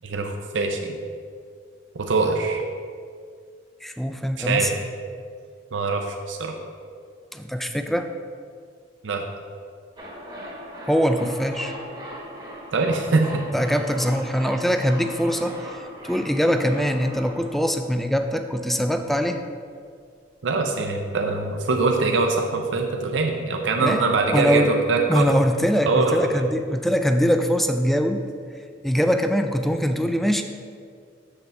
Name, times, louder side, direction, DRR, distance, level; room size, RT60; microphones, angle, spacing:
voice 1, 0.0-1.0 2.1-2.6 4.4-4.7 5.7-6.5 9.0-9.2 12.7-13.3 20.4-25.3 25.9-26.4, right 3 dB, 90° right, 3 dB, 0.6 m, -23 dB
voice 2, 3.8-4.7 7.3-8.1 10.9-11.7 13.5-19.4 23.8-24.0 24.3-24.8 25.1-28.2 28.8-30.4, equal, ahead, 7 dB, 0.3 m, -22 dB
sound 1, 10.0-18.8 19.0-19.1, equal, 25° right, 1.0 m, -39 dB
7.0 x 6.5 x 3.4 m, 2.1 s
head